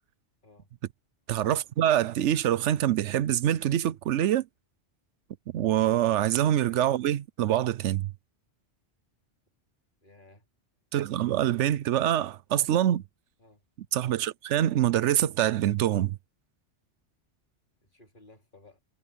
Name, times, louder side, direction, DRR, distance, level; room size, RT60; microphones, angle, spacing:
voice 1, 1.3-4.5 5.5-8.1 10.9-13.0 13.9-16.2, right 11 dB, 85° right, 0.9 m, -25 dB
voice 2, 10.0-10.5 13.4-13.6 17.8-18.8, left 2 dB, 45° left, 3.7 m, -56 dB
omnidirectional pair, 1.2 m